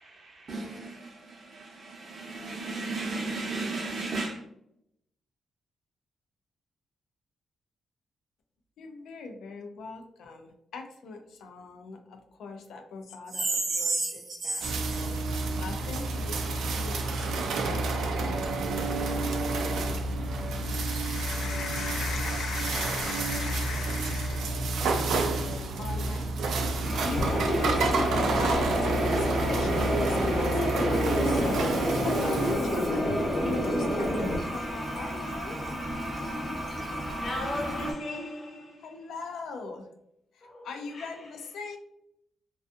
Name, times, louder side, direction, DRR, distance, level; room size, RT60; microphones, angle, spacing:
voice 1, 0.3-4.4 13.3-14.1 14.4-14.7, right 3 dB, 40° right, 0.6 m, -33 dB
voice 2, 8.8-17.9 18.2-19.9 20.4-24.7 25.8-26.5 26.9-35.6 38.8-39.9 40.3-41.8, left 4 dB, 85° left, 0.4 m, -41 dB
sound 1, 14.6-32.5, right 3 dB, 80° right, 0.3 m, -29 dB
Toilet flush, 26.8-37.9, equal, 5° right, 0.6 m, -35 dB
sound 2, 27.2-34.3, left 1 dB, 70° left, 1.0 m, -28 dB
voice 3, 37.1-38.9 40.4-40.7 40.9-41.1, left 1 dB, 40° left, 0.7 m, -36 dB
2.5 x 2.3 x 2.4 m
wide cardioid pair, 165°, 0 cm